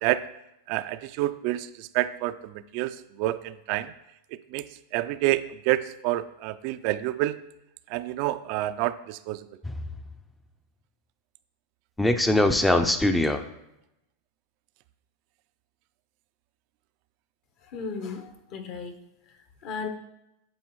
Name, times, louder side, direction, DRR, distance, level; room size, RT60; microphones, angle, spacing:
voice 1, 0.7-3.9 4.5-4.7 4.9-7.4 7.9-9.4, right 15 dB, 55° right, 12 dB, 0.3 m, -28 dB
sound 1, 9.6-10.1 12.0-13.4, left 1 dB, 5° left, 0.4 m, -22 dB
voice 2, 17.6-19.0 19.6-19.9, left 5 dB, 50° left, 6 dB, 1.0 m, -35 dB
9.2 x 4.1 x 3.1 m, 0.86 s
hypercardioid pair, 115°, 0 cm